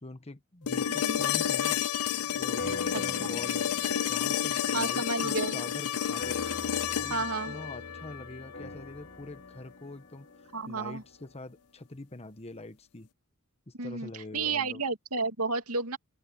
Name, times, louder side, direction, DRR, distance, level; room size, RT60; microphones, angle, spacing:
voice 1, 0.0-1.8 2.2-3.7 4.1-6.4 6.9-10.3 10.7-13.1 13.7-14.8, left 2 dB, 30° left, 1.2 m, -44 dB
sound 1, 0.7-8.7 10.8-10.9, left 9 dB, 90° left, 0.5 m, -30 dB
voice 2, 0.9-1.2 3.2-3.4 4.7-5.6 7.1-7.5 10.5-11.0 13.8-16.0, right 3 dB, 90° right, 2.6 m, -32 dB
sound 2, 2.6-11.3, left 2 dB, 55° left, 4.4 m, -43 dB
open air
head